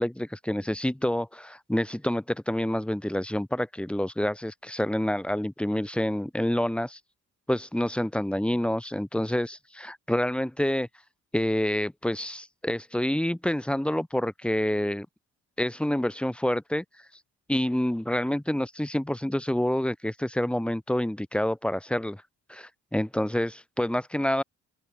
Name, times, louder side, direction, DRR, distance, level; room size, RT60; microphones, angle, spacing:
voice 1, 0.0-7.0 7.5-10.9 11.3-15.1 15.6-16.8 17.5-22.2 22.5-24.4, left 1 dB, 5° left, 1.5 m, -28 dB
open air
cardioid pair, 90°, 30 cm